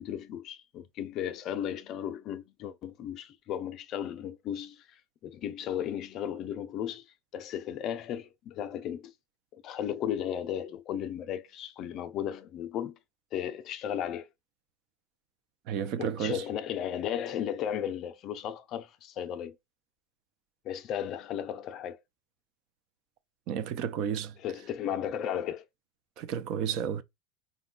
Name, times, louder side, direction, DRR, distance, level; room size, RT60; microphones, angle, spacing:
voice 1, 0.0-7.0 7.3-9.1 9.5-12.9 13.3-14.3 16.0-19.6 20.6-22.0 24.4-25.6, left 10 dB, 35° left, 0.5 m, -35 dB
voice 2, 15.7-16.4 23.5-24.3 26.2-27.0, right 8 dB, 45° right, 0.5 m, -32 dB
5.1 x 2.2 x 3.8 m
cardioid pair, 170°, 0 cm